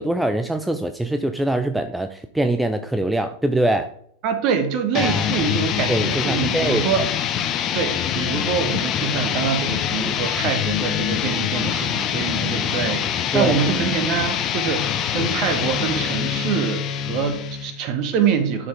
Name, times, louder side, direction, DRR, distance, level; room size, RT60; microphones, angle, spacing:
voice 1, 0.0-3.9 4.9-5.5 5.9-7.0 13.3-13.5, right 1 dB, 5° right, 8 dB, 0.4 m, -23 dB
voice 2, 4.2-7.0 7.7-18.7, right 7 dB, 40° right, 7 dB, 1.4 m, -25 dB
sound 1, 4.9-17.8, left 9 dB, 30° left, 0.8 m, -24 dB
12.0 x 4.6 x 3.6 m, 0.66 s
figure-of-eight pair, 90°, 0 cm